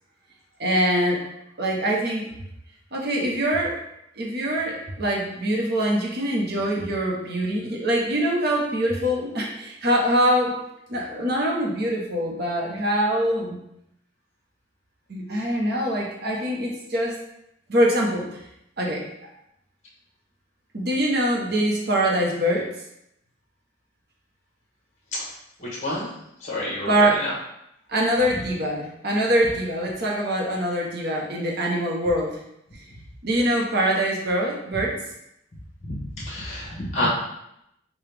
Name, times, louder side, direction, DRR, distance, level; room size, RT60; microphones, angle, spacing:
voice 1, 0.6-1.2 1.6-2.3 2.9-3.8 4.2-10.6 10.9-13.6 15.1-17.2 17.7-18.4 18.8-19.1 20.7-22.7 26.9-27.2 27.9-32.4 33.2-35.0, equal, 55° right, -1 dB, 0.8 m, -24 dB
voice 2, 25.6-26.1 26.4-27.3 35.8-37.1, left 1 dB, 35° left, -5 dB, 1.0 m, -29 dB
4.9 x 2.3 x 3.3 m, 0.80 s
head